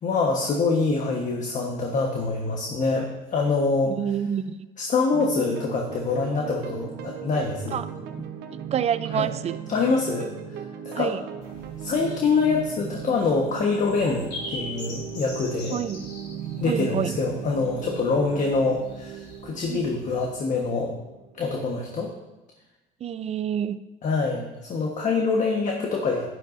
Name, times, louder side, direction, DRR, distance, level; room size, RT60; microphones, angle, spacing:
voice 1, 0.0-3.9 4.8-7.8 9.1-9.3 9.7-10.3 10.8-11.1 11.8-15.7 16.6-20.9 21.4-22.1 24.0-26.3, left 4 dB, 45° left, 1 dB, 1.3 m, -25 dB
voice 2, 3.9-4.6 7.7-7.9 8.7-9.6 10.9-11.2 15.7-16.0 16.6-17.1 19.7-19.8 23.0-23.8, right 8 dB, 40° right, 13 dB, 0.5 m, -27 dB
sound 1, 5.1-22.0, right 8 dB, 75° right, 1.0 m, -38 dB
sound 2, 11.4-20.3, left 2 dB, 80° left, 3.9 m, -43 dB
11.0 x 11.0 x 2.7 m, 1.0 s
cardioid pair, 110°, 17 cm